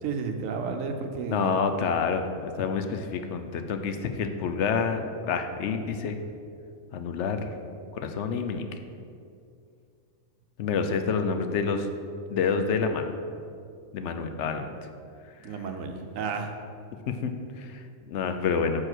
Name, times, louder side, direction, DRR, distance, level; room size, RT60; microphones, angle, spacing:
voice 1, 0.0-1.5 15.4-16.5, right 5 dB, 75° right, 5 dB, 1.1 m, -32 dB
voice 2, 1.3-6.2 6.9-7.5 7.9-8.6 10.6-11.9 12.3-13.1 13.9-14.7 15.5-15.6 17.1-18.8, left 5 dB, 65° left, 7 dB, 0.8 m, -28 dB
6.5 x 4.8 x 6.0 m, 2.4 s
omnidirectional pair, 1.4 m